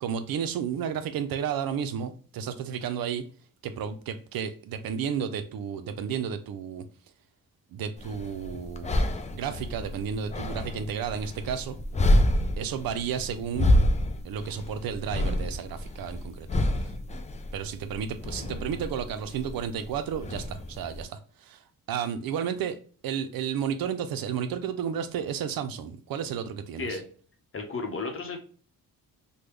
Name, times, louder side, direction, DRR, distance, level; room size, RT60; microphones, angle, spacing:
voice 1, 0.0-3.2 3.6-6.8 7.7-11.8 12.6-13.7 14.2-16.5 16.8-16.9 17.5-21.6 21.9-22.8 23.0-27.0, right 8 dB, 75° right, 0.5 m, -32 dB
sound 1, 8.0-21.0, left 1 dB, 20° left, 0.3 m, -28 dB
voice 2, 27.5-28.4, left 4 dB, 35° left, 0.8 m, -33 dB
3.5 x 2.2 x 3.1 m
cardioid pair, 120°, 35 cm